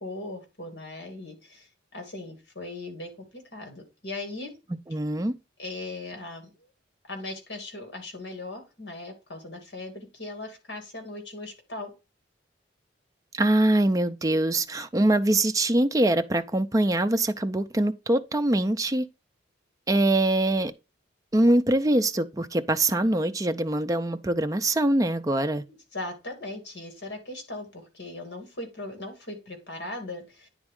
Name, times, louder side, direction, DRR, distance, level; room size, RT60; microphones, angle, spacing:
voice 1, 0.0-4.5 5.6-6.5 7.1-11.9 25.9-30.5, left 2 dB, 60° left, 2.3 m, -38 dB
voice 2, 4.9-5.3 13.3-19.1 19.9-20.7 21.3-25.6, right 1 dB, 20° right, 0.4 m, -23 dB
9.7 x 3.6 x 3.6 m
head